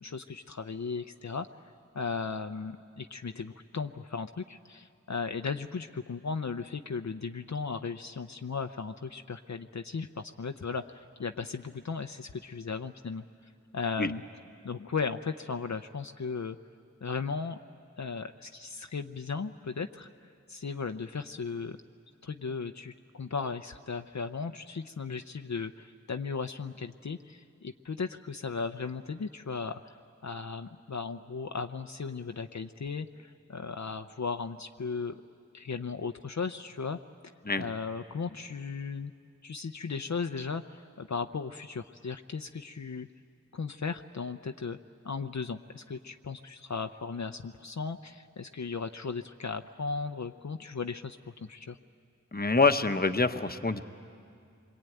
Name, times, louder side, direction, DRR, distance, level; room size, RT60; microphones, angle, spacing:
voice 1, 0.0-1.5 1.9-14.2 14.6-16.6 17.0-17.6 18.0-21.8 22.2-30.0 30.2-35.2 35.5-37.0 37.6-39.1 39.4-43.1 43.5-44.8 45.0-51.8, left 5 dB, 65° left, 7 dB, 0.6 m, -36 dB
voice 2, 52.3-53.8, left 3 dB, 30° left, 8 dB, 1.0 m, -25 dB
27.0 x 22.5 x 9.2 m, 2.4 s
wide cardioid pair, 45°, 30 cm